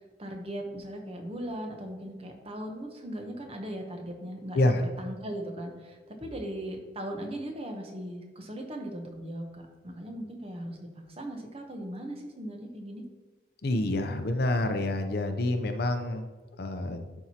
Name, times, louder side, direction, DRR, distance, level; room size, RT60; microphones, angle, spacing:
voice 1, 0.2-13.0, right 1 dB, 30° right, 3 dB, 0.9 m, -38 dB
voice 2, 13.6-16.3 16.6-17.0, left 1 dB, 55° left, 7 dB, 0.6 m, -27 dB
11.0 x 4.6 x 2.9 m, 1.3 s
head